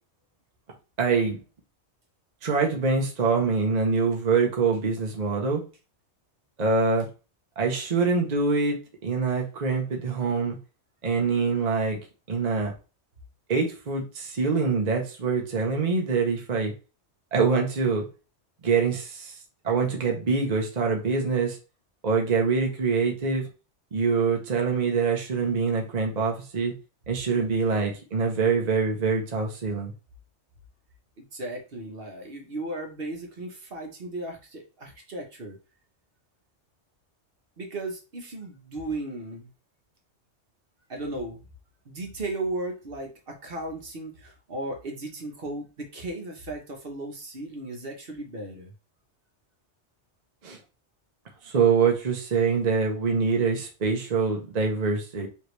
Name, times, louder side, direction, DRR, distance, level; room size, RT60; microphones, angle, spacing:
voice 1, 1.0-1.4 2.4-5.6 6.6-7.1 7.6-10.6 11.0-12.0 12.3-12.7 13.5-16.7 17.3-18.1 18.6-19.4 19.6-21.6 22.0-23.5 23.9-26.7 27.1-29.9 50.4-50.6 51.4-55.3, right 5 dB, 40° right, 1 dB, 0.9 m, -24 dB
voice 2, 31.2-35.6 37.6-39.5 40.9-41.5 41.8-48.7, right 2 dB, 55° right, 2 dB, 1.2 m, -36 dB
4.9 x 3.0 x 3.2 m, 0.31 s
omnidirectional pair, 1.2 m